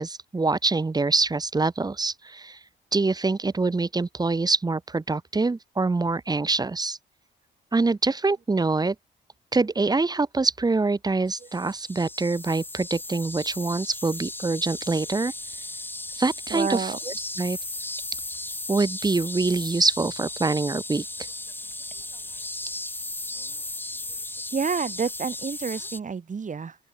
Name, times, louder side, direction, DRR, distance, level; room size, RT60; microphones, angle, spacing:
voice 1, 0.0-2.6 2.9-7.0 7.7-8.9 9.5-15.3 16.1-16.9 17.4-17.6 18.7-21.0, right 3 dB, 20° right, 1.2 m, -25 dB
sound 1, 11.3-26.0, left 2 dB, 10° left, 1.0 m, -36 dB
voice 2, 16.5-17.0 24.5-26.8, right 5 dB, 40° right, 7.2 m, -29 dB
open air
cardioid pair, 90°, 20 cm